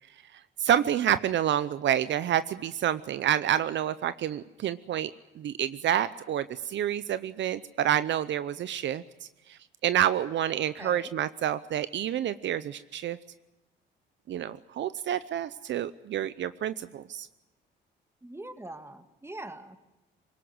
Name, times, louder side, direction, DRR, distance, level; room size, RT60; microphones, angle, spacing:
voice 1, 0.6-5.1 5.4-9.0 9.5-13.2 14.3-17.3, right 10 dB, 65° right, 15 dB, 0.7 m, -28 dB
voice 2, 10.5-11.1 18.2-19.8, right 1 dB, 10° right, 9 dB, 2.1 m, -43 dB
22.0 x 18.5 x 9.5 m, 1.0 s
cardioid pair, 90°, 20 cm